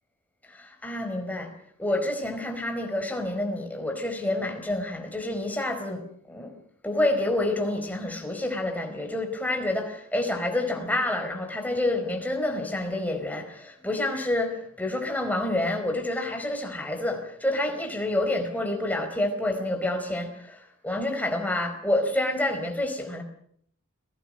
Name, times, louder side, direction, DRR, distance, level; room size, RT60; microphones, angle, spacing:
voice 1, 0.5-1.5 1.8-6.0 6.3-6.5 6.8-23.2, left 1 dB, 5° left, 4.7 m, -28 dB
29.5 x 18.5 x 6.5 m
head